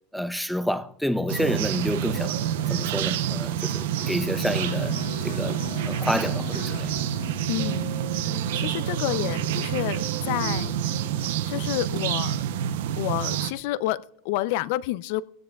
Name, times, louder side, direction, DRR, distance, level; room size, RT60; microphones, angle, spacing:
voice 1, 0.1-2.4 2.7-6.9, equal, ahead, 0.6 m, -29 dB
sound 1, 1.3-13.5, right 10 dB, 80° right, 0.7 m, -28 dB
sound 2, 3.9-11.7, right 4 dB, 60° right, 2.2 m, -39 dB
Electric guitar, 4.0-11.7, left 12 dB, 85° left, 0.8 m, -42 dB
voice 2, 7.5-8.1 8.5-10.8 11.5-12.4 13.0-15.2, left 15 dB, 60° left, 0.4 m, -29 dB
17.0 x 16.0 x 2.3 m
supercardioid pair, 155°, 0 cm